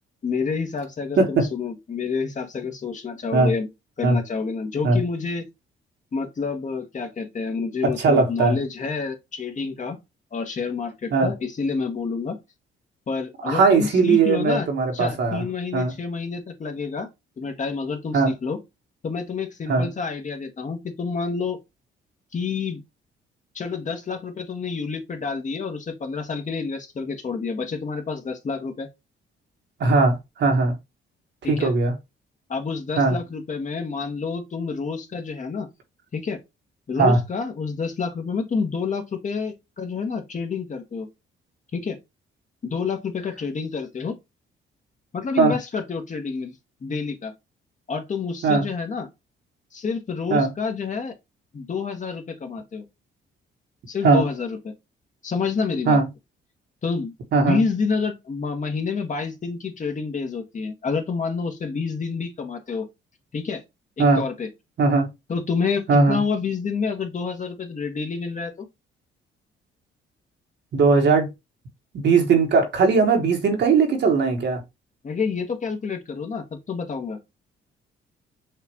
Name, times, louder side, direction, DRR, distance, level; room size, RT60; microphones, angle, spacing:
voice 1, 0.2-3.7 4.0-5.4 6.1-10.0 10.3-12.4 13.1-14.7 14.9-17.1 17.4-18.6 19.0-21.6 22.3-22.8 23.5-28.9 31.4-31.7 32.5-35.7 36.1-36.4 36.9-41.1 41.7-42.0 42.6-44.2 45.1-46.6 46.8-47.3 47.9-49.1 49.7-51.1 51.5-52.8 53.9-54.7 55.2-56.0 56.8-62.9 63.3-63.6 64.0-64.5 65.3-68.6 75.0-77.2, left 5 dB, 40° left, 1.2 m, -28 dB
voice 2, 1.2-1.5 3.3-3.5 4.0-4.2 4.8-5.0 7.8-8.6 11.1-11.3 13.4-15.4 15.7-15.9 18.1-18.3 19.7-19.9 29.8-30.8 31.4-32.0 33.0-33.2 37.0-37.2 45.4-45.6 48.4-48.7 50.3-50.5 54.0-54.3 55.9-56.1 57.3-57.6 64.0-64.2 64.8-65.1 65.9-66.2 70.7-71.3 71.9-74.6, right 4 dB, 60° right, 1.2 m, -19 dB
6.4 x 2.5 x 2.9 m
cardioid pair, 90°, 20 cm